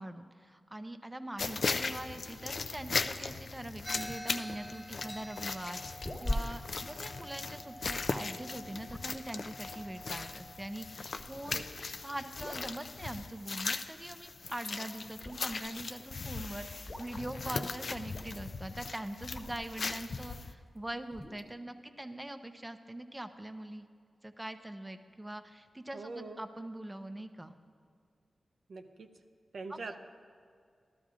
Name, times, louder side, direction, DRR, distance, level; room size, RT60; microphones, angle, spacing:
voice 1, 0.0-23.9 24.2-27.5 29.7-30.0, right 1 dB, 15° right, 8 dB, 0.6 m, -43 dB
sound 1, 1.4-20.5, left 4 dB, 65° left, 0.4 m, -39 dB
sound 2, 3.8-12.2, equal, 15° left, 0.8 m, -49 dB
sound 3, 4.1-19.9 20.3-21.5, left 1 dB, 35° left, 1.3 m, -44 dB
voice 2, 25.9-26.4 28.7-29.1 29.5-30.0, right 3 dB, 80° right, 5 dB, 0.6 m, -43 dB
13.5 x 12.5 x 2.5 m, 2.1 s
cardioid pair, 55°, 0 cm